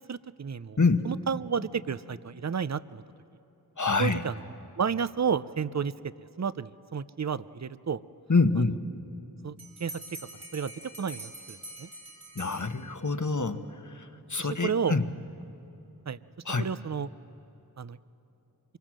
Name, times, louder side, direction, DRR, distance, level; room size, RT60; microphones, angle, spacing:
voice 1, 0.1-0.8 1.0-3.0 4.0-4.3 4.8-5.9 6.4-8.0 9.4-10.0 10.5-10.7 11.0-11.9 14.4-15.0 16.1-16.2 16.6-17.1 17.8-18.0, right 6 dB, 45° right, 17 dB, 0.6 m, -31 dB
voice 2, 0.8-1.1 3.8-4.2 8.3-8.8 12.3-15.0 16.4-16.6, left 3 dB, 50° left, 8 dB, 1.2 m, -26 dB
Bell, 9.6-13.2, right 1 dB, 80° right, 3.8 m, -45 dB
25.0 x 23.5 x 7.5 m, 3.0 s
wide cardioid pair, 45°, 38 cm